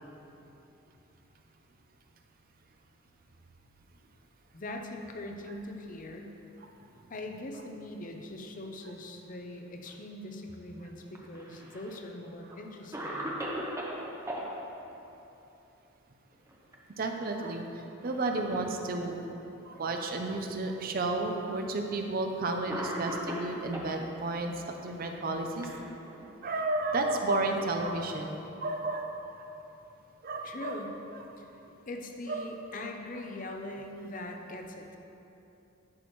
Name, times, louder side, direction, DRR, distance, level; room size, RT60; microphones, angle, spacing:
voice 1, 4.5-6.4 7.1-13.3 30.4-30.9 31.4-31.5 31.9-35.0, left 1 dB, 40° left, 3 dB, 0.6 m, -41 dB
Cough, 11.1-12.0 12.5-12.6 12.9-14.5 16.3-16.8 17.1-17.2 18.0-18.7 19.5-19.6 20.6-20.7 21.9-22.1 22.7-23.9 24.9-26.3, equal, 15° right, 0.8 m, -39 dB
voice 2, 17.0-17.7 18.0-19.2 19.6-25.7 26.4-29.1 30.2-30.8 32.3-32.5, right 2 dB, 45° right, 4 dB, 0.5 m, -32 dB
11.0 x 6.2 x 3.1 m, 3.0 s
head